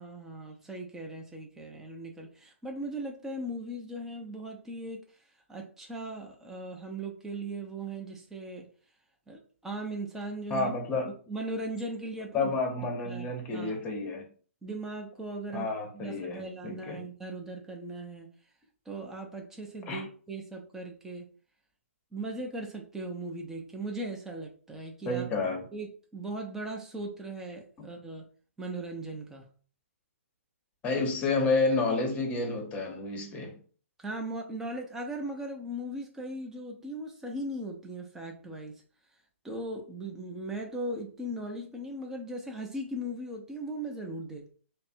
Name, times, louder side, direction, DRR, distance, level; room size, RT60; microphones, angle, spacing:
voice 1, 0.0-5.0 5.5-8.7 9.3-10.7 11.3-12.5 13.0-13.8 14.6-15.7 15.9-18.3 18.9-21.3 22.1-25.3 25.7-28.2 28.6-29.5 34.0-38.8 39.4-44.5, right 1 dB, 5° right, 0.7 m, -38 dB
voice 2, 10.5-11.1 12.3-14.2 15.5-17.0 19.9-20.0 25.0-25.6 27.8-27.9 30.8-33.6, left 3 dB, 20° left, 0.9 m, -30 dB
3.3 x 2.2 x 4.2 m
hypercardioid pair, 140°, 8 cm